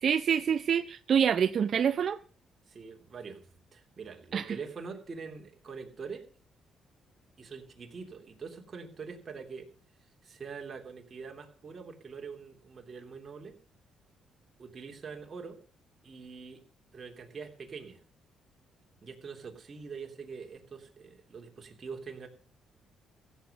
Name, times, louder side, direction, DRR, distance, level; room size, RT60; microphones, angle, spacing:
voice 1, 0.0-2.2 4.3-4.5, right 8 dB, 55° right, 0.6 m, -26 dB
voice 2, 2.7-6.2 7.4-9.7 10.2-13.6 14.6-15.6 16.0-16.6 16.9-18.0 19.0-22.3, right 5 dB, 40° right, 3.2 m, -44 dB
16.0 x 7.9 x 6.9 m
cardioid pair, 90°, 0 cm